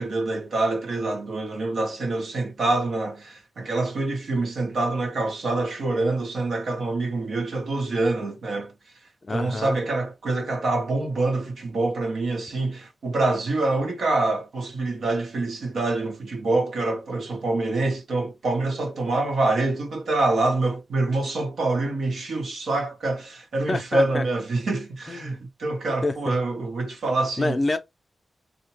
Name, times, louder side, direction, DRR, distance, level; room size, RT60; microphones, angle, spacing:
voice 1, 0.0-8.7 9.3-27.6, right 2 dB, 75° right, 0.8 m, -26 dB
voice 2, 9.2-9.8 23.7-24.2 25.1-25.4 26.0-26.4 27.4-27.8, left 2 dB, 30° left, 0.5 m, -27 dB
2.8 x 2.1 x 3.0 m
wide cardioid pair, 130°, 0 cm